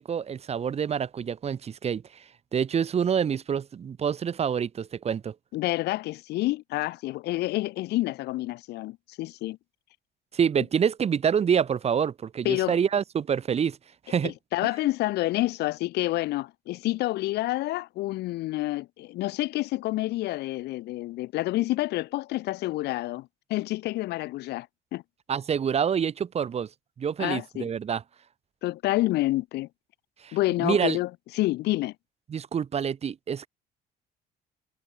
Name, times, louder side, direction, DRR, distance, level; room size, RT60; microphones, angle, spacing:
voice 1, 0.0-2.2 2.5-5.3 10.3-13.8 14.1-14.3 25.3-26.7 27.0-28.0 30.2-31.0 32.3-33.5, right 7 dB, 40° right, 1.3 m, -27 dB
voice 2, 5.5-9.6 12.4-12.8 14.2-24.7 24.9-25.0 27.2-27.7 28.6-29.7 30.3-31.9, left 18 dB, 80° left, 1.0 m, -28 dB
cardioid pair, 110°, 17 cm